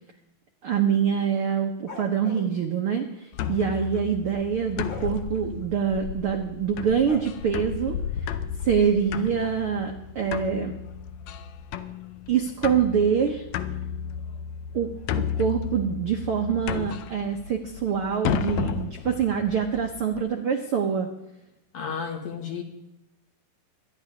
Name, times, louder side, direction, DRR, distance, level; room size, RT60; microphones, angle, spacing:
voice 1, 0.6-8.0 8.2-8.3 8.6-10.8 12.3-13.4 14.7-21.1, right 7 dB, 80° right, 3 dB, 1.2 m, -25 dB
sound 1, 1.9-2.5 4.9-5.1 7.0-7.2, left 3 dB, 35° left, 2.1 m, -39 dB
sound 2, 3.3-20.2, left 8 dB, 85° left, 1.5 m, -33 dB
voice 2, 21.7-22.6, left 6 dB, 60° left, 2 dB, 3.2 m, -32 dB
24.5 x 10.5 x 3.6 m, 0.91 s
omnidirectional pair, 4.2 m